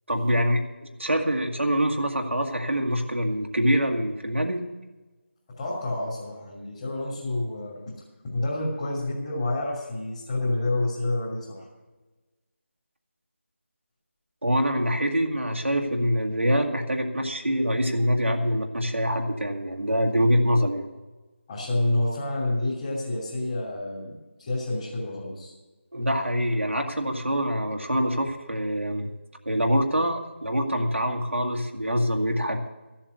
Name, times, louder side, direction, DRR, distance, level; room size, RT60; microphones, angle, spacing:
voice 1, 0.1-4.6 14.4-20.9 25.9-29.1 29.5-32.7, equal, 75° right, 2 dB, 1.8 m, -25 dB
voice 2, 5.6-7.8 8.3-11.7 21.5-25.5, left 2 dB, 20° left, -8 dB, 2.9 m, -28 dB
14.0 x 7.4 x 8.1 m, 1.2 s
figure-of-eight pair, 165°, 7 cm